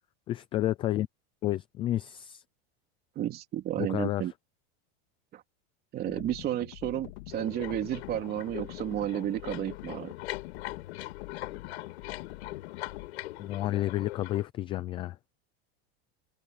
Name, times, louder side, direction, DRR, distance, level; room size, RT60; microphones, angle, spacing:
voice 1, 0.3-1.1 1.4-2.4 3.8-4.2 13.4-15.2, left 14 dB, 15° left, 0.3 m, -30 dB
voice 2, 3.1-4.3 5.3-5.4 5.9-10.1, right 12 dB, 30° right, 3.3 m, -32 dB
sound 1, 6.1-13.1, left 20 dB, 60° left, 2.8 m, -45 dB
sound 2, 7.3-14.5, left 17 dB, 85° left, 4.4 m, -42 dB
supercardioid pair, 170°, 32 cm